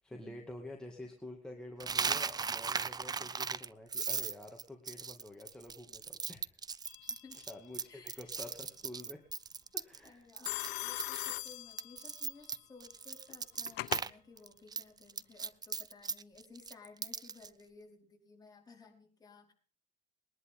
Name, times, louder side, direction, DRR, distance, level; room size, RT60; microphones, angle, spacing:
voice 1, 0.0-6.6 7.5-9.2 9.7-10.3, left 1 dB, 5° left, 1 dB, 2.1 m, -49 dB
Coin (dropping), 1.8-10.1 10.4-10.7 11.0-14.1 14.4-17.5, right 5 dB, 25° right, 0.5 m, -37 dB
Telephone, 6.9-7.4 10.5-12.3 13.3-14.1, left 19 dB, 90° left, 0.7 m, -40 dB
voice 2, 7.1-7.4 7.9-8.4 10.0-19.5, left 4 dB, 20° left, 0 dB, 4.8 m, -57 dB
21.0 x 11.0 x 3.6 m, 0.42 s
cardioid pair, 110°, 17 cm